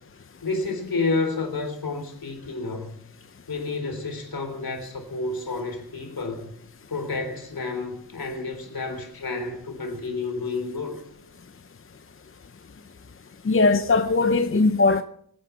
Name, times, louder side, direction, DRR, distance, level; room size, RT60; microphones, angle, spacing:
voice 1, 0.4-3.0 3.5-6.5 6.9-11.0, left 3 dB, 65° left, 4.1 m, -30 dB
voice 2, 13.4-15.0, left 3 dB, 35° left, 0.8 m, -19 dB
24.0 x 10.0 x 5.9 m
cardioid pair, 65°, 38 cm